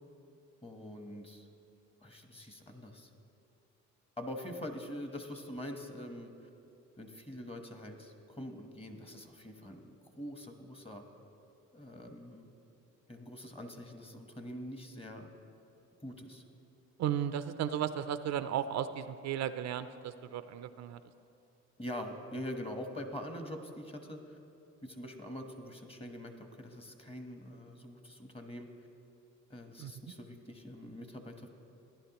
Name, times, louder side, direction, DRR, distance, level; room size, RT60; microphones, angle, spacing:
voice 1, 0.6-1.5 2.0-3.1 4.2-6.3 7.0-11.0 11.7-12.5 13.1-15.3 16.0-16.4 21.8-24.4 24.8-28.7 29.5-31.5, left 1 dB, 20° left, 5 dB, 1.1 m, -44 dB
voice 2, 17.0-21.0 29.8-29.9, right 9 dB, 65° right, 11 dB, 0.5 m, -35 dB
16.0 x 10.5 x 3.0 m, 2.6 s
cardioid pair, 90°, 30 cm